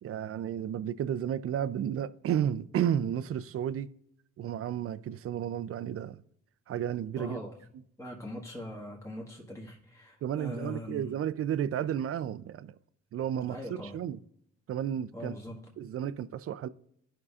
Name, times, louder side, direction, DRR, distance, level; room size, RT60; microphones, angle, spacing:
voice 1, 0.0-3.9 4.4-6.2 6.7-7.4 10.2-12.7 13.1-14.2 14.7-15.3 15.8-16.7, right 9 dB, 50° right, 0.4 m, -32 dB
voice 2, 7.1-7.6 8.0-11.1 13.4-14.0 15.1-15.6, left 1 dB, 10° left, 1.4 m, -41 dB
12.0 x 5.5 x 2.4 m
cardioid pair, 90°, 30 cm